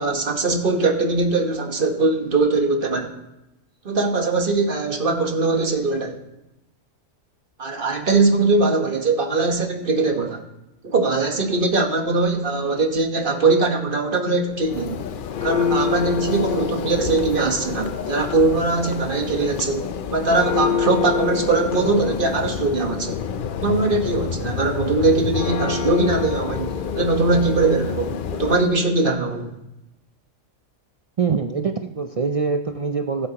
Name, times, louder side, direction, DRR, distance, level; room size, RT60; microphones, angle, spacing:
voice 1, 0.0-3.1 3.8-6.2 7.6-10.4 10.8-15.0 15.4-23.2 23.6-29.5, right 3 dB, 45° right, 3 dB, 1.4 m, -21 dB
Church bell, 14.5-28.8, left 6 dB, 55° left, 0.6 m, -27 dB
voice 2, 31.2-33.3, right 5 dB, 65° right, 6 dB, 0.3 m, -24 dB
19.5 x 8.3 x 2.9 m, 0.93 s
omnidirectional pair, 1.3 m